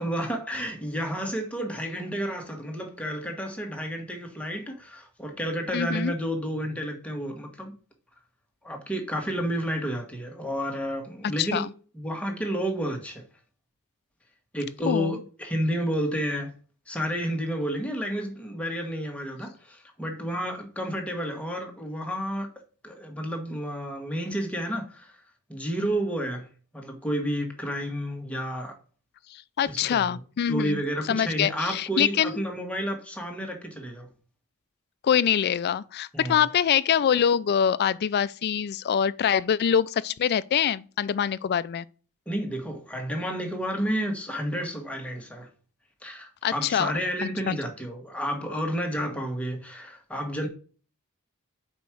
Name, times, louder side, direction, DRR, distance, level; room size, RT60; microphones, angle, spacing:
voice 1, 0.0-7.7 8.6-11.7 11.9-13.2 14.5-16.5 16.9-22.5 22.8-25.2 25.5-26.5 26.7-28.7 29.6-30.2 30.5-34.1 36.1-36.4 42.3-45.5 46.0-50.5, equal, 5° left, 1.3 m, -31 dB
voice 2, 5.7-6.1 11.4-11.7 14.9-15.2 29.3-32.4 35.0-41.9 46.4-46.9 47.2-47.5, left 8 dB, 50° left, 0.3 m, -25 dB
5.2 x 4.6 x 6.1 m
head